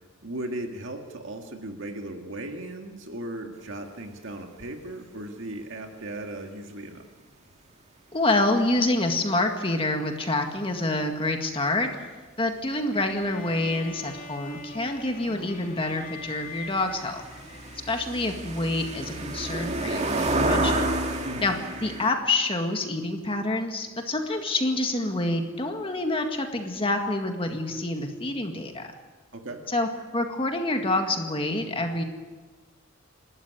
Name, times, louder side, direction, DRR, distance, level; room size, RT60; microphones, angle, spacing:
voice 1, 0.2-7.0 21.2-21.5 29.3-29.6, right 1 dB, 65° right, 3 dB, 2.2 m, -37 dB
voice 2, 8.1-11.9 12.4-17.2 17.9-20.8 21.4-21.5 21.8-28.9 29.7-32.0, left 2 dB, 25° left, 4 dB, 1.9 m, -27 dB
sound 1, 12.9-18.2, left 3 dB, 45° left, 3.4 m, -43 dB
sound 2, 14.1-14.2 14.4-22.1, right 2 dB, 35° right, 2.3 m, -30 dB
28.0 x 12.5 x 9.6 m, 1.3 s
head